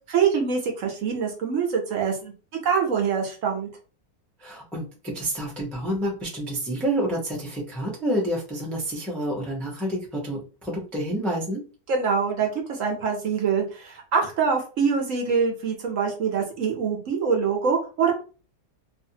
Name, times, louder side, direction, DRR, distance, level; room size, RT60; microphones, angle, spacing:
voice 1, 0.1-2.3 2.6-3.7 11.9-18.1, right 6 dB, 65° right, 1 dB, 1.0 m, -24 dB
voice 2, 4.4-11.6, right 1 dB, ahead, -3 dB, 0.4 m, -28 dB
2.6 x 2.5 x 2.8 m, 0.35 s
omnidirectional pair, 1.6 m